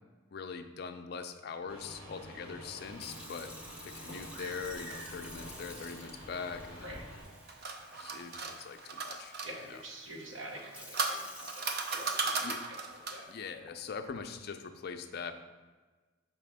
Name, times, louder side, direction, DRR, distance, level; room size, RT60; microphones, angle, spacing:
voice 1, 0.3-3.5 3.8-7.0 8.0-9.4 9.6-9.8 12.4-12.7 13.3-15.3, left 5 dB, 50° left, 8 dB, 0.4 m, -42 dB
sound 1, 1.7-7.2, equal, 85° right, 1.8 m, -47 dB
Sink (filling or washing) / Fill (with liquid), 2.8-13.0 13.7-14.0, left 1 dB, 5° right, 0.6 m, -52 dB
sound 2, 7.2-9.5 10.5-13.3, right 4 dB, 50° right, 0.5 m, -36 dB
voice 2, 9.4-11.6 11.9-12.5 13.1-13.3, right 1 dB, 70° right, 1 dB, 1.0 m, -46 dB
5.6 x 5.0 x 3.5 m, 1.3 s
head